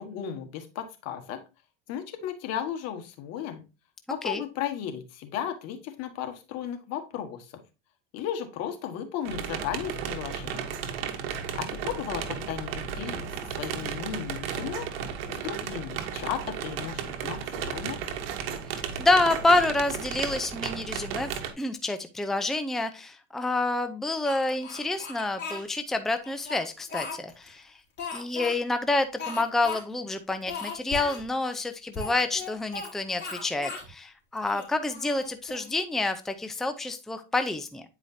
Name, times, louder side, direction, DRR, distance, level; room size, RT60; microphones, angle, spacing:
voice 1, 0.0-1.4 1.9-3.6 4.1-7.5 8.1-10.6 11.5-14.9 15.3-18.0, left 9 dB, 60° left, 6 dB, 1.5 m, -35 dB
sound 1, 9.2-21.5, right 7 dB, 85° right, 1.2 m, -34 dB
voice 2, 19.0-21.3 21.6-27.7 28.1-37.8, left 2 dB, ahead, 8 dB, 0.6 m, -28 dB
Speech, 24.2-25.6 26.2-27.5 28.0-28.6 29.2-29.8 30.1-30.2 30.5-31.2 31.9-32.9 33.2-33.9 34.4-35.7, left 4 dB, 35° left, 3.1 m, -37 dB
9.2 x 4.9 x 2.7 m, 0.29 s
supercardioid pair, 100°, 29 cm